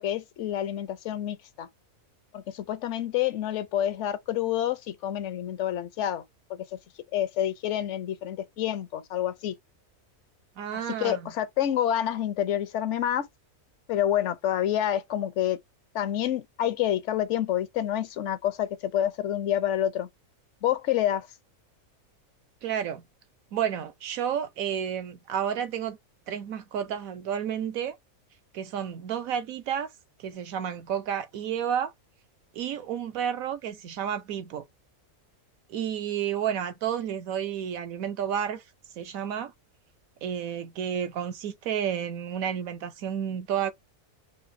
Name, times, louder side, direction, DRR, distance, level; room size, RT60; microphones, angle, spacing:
voice 1, 0.0-1.7 2.3-6.2 6.5-6.7 7.1-9.5 10.7-13.3 13.9-15.6 15.9-20.1 20.6-21.3, left 11 dB, 65° left, 0.8 m, -28 dB
voice 2, 10.6-11.3 22.6-23.0 23.5-26.0 26.3-28.0 28.5-29.9 30.2-31.9 32.5-34.6 35.7-38.6 39.0-39.5 40.2-43.7, right 9 dB, 70° right, 1.0 m, -31 dB
5.9 x 2.7 x 2.6 m
omnidirectional pair, 1.6 m